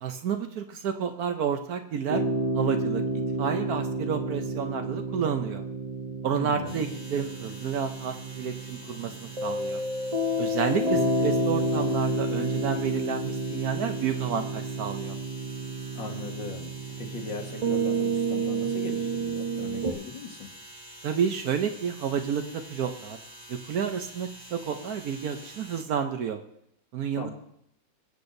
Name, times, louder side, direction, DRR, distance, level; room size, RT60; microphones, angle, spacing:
voice 1, 0.0-2.2 2.5-3.0 3.4-5.6 6.2-9.1 9.4-9.8 10.4-15.2 21.0-23.2 23.5-26.4 26.9-27.3, right 7 dB, 65° right, 6 dB, 1.1 m, -30 dB
sound 1, 2.1-19.9, right 1 dB, 40° right, 0.5 m, -30 dB
voice 2, 6.3-6.9 16.0-20.5 27.2-27.3, left 4 dB, 80° left, 1 dB, 2.3 m, -39 dB
sound 2, 6.7-25.8, right 1 dB, 15° right, 1.7 m, -47 dB
23.0 x 8.3 x 2.7 m, 0.74 s
omnidirectional pair, 2.0 m